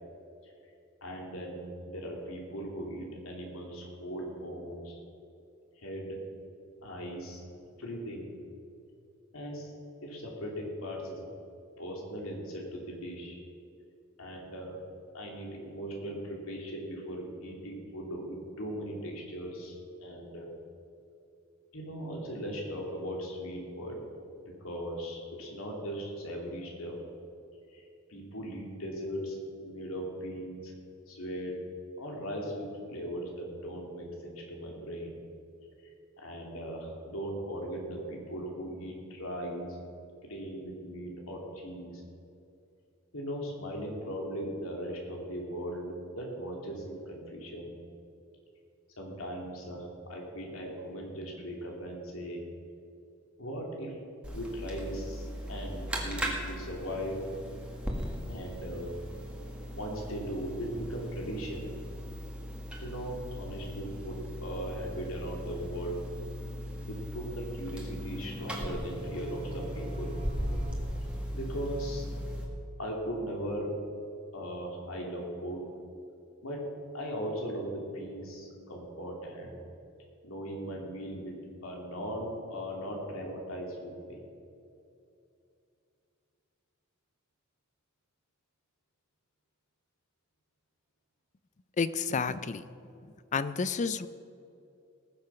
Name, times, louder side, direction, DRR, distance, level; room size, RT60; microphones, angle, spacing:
voice 1, 1.0-5.0 5.8-6.2 6.8-7.4 7.8-8.3 9.3-9.7 10.0-11.2 11.8-13.4 14.2-14.8 15.1-20.5 21.7-24.0 24.4-27.0 27.7-30.7 31.1-31.6 32.0-35.1 36.2-39.7 40.2-42.0 43.1-47.8 49.0-52.4 53.4-54.0 54.3-57.2 58.2-58.9 59.7-61.7 62.8-66.0 66.8-70.2 71.3-72.0 72.8-73.7 74.3-75.7 76.4-76.6 76.9-79.5 80.2-84.2, equal, 75° left, -1 dB, 3.0 m, -38 dB
sound 1, 54.2-72.4, equal, 5° right, 1.9 m, -38 dB
sound 2, 68.3-72.4, right 4 dB, 30° right, 1.1 m, -46 dB
voice 2, 91.8-92.6 93.3-94.1, left 5 dB, 35° left, 14 dB, 0.5 m, -30 dB
19.0 x 7.7 x 5.8 m, 2.6 s
head